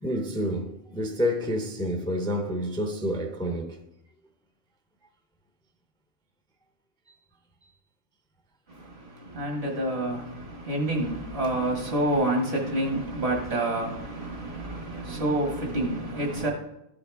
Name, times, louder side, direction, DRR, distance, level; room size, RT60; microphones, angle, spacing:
voice 1, 0.0-3.8, equal, 5° left, 0.4 m, -29 dB
voice 2, 8.7-16.5, right 1 dB, 75° right, 1.9 m, -28 dB
12.5 x 4.8 x 3.5 m
omnidirectional pair, 1.1 m